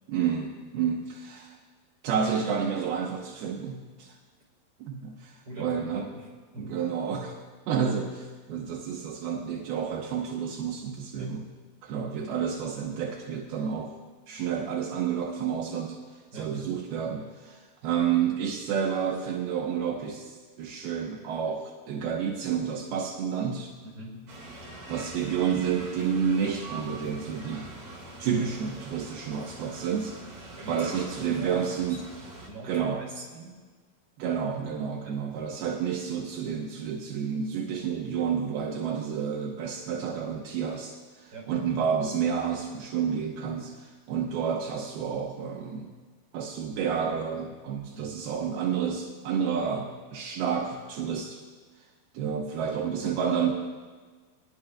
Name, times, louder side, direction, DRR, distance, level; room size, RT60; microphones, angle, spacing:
voice 1, 0.1-1.6 2.0-4.1 4.8-6.1 6.6-7.4 7.7-11.5 11.8-14.0 14.3-16.0 16.3-23.7 24.9-27.7 28.2-32.0 32.6-33.0 34.2-45.9 46.3-51.4 51.8-51.9 52.1-53.5, right 7 dB, 75° right, 0 dB, 2.8 m, -30 dB
voice 2, 5.5-6.2 6.5-6.8 11.2-11.4 16.3-16.7 23.8-24.3 30.5-32.0 32.4-33.6 34.7-35.2 41.3-41.5 47.9-48.2, right 1 dB, 25° right, -3 dB, 5.4 m, -42 dB
sound 1, 24.3-32.5, right 2 dB, 45° right, 4.4 m, -43 dB
24.5 x 19.5 x 2.5 m, 1.4 s
omnidirectional pair, 4.8 m